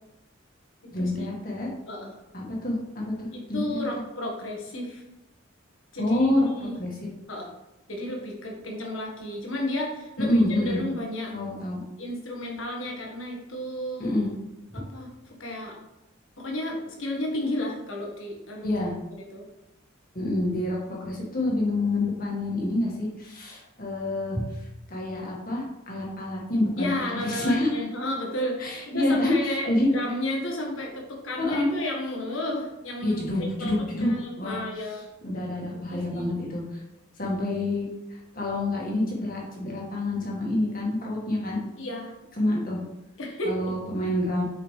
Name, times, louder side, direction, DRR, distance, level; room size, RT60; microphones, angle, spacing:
voice 1, 0.9-1.7 2.3-3.8 6.0-6.9 10.2-10.8 11.3-11.8 14.0-14.3 14.7-14.8 18.6-18.9 20.1-27.7 28.6-29.9 31.4-31.7 33.0-34.6 35.2-36.8 37.2-41.6 42.4-42.8 43.4-44.4, left 1 dB, 45° left, -3 dB, 1.7 m, -27 dB
voice 2, 3.3-5.0 5.9-6.8 7.3-7.5 7.9-11.3 12.0-14.1 14.7-15.8 16.4-18.7 19.3-19.4 26.8-33.7 34.0-35.0 35.7-36.3 41.8-42.1 43.2-43.7, left 1 dB, 85° left, 0 dB, 1.5 m, -32 dB
6.4 x 5.0 x 3.2 m, 0.94 s
head